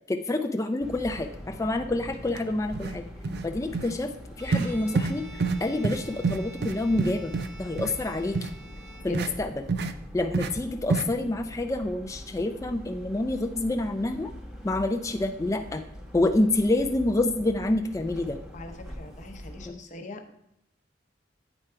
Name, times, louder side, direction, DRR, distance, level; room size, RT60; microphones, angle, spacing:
voice 1, 0.1-1.3 1.6-3.0 3.4-4.1 4.4-7.3 7.6-8.4 9.0-9.5 10.1-14.3 14.6-15.8 16.1-18.4 19.7-19.8, left 2 dB, 15° left, 4 dB, 0.4 m, -27 dB
sound 1, 0.8-19.7, equal, ahead, 1.0 m, -43 dB
sound 2, 2.3-2.4 2.7-3.0 3.2-3.5 3.7-3.9 4.5-4.7 5.0-5.1 5.4-5.6 5.8-6.0 6.2-7.5 7.8-7.9 8.3-8.5 9.1-9.3 9.7-9.9 10.3-10.5 10.9-11.1, right 4 dB, 55° right, 0.5 m, -27 dB
Bowed string instrument, 4.3-9.6, equal, 75° right, 1.9 m, -48 dB
voice 2, 9.1-9.4 18.5-20.3, left 1 dB, 40° left, 6 dB, 0.8 m, -42 dB
8.9 x 4.7 x 4.4 m, 0.80 s
head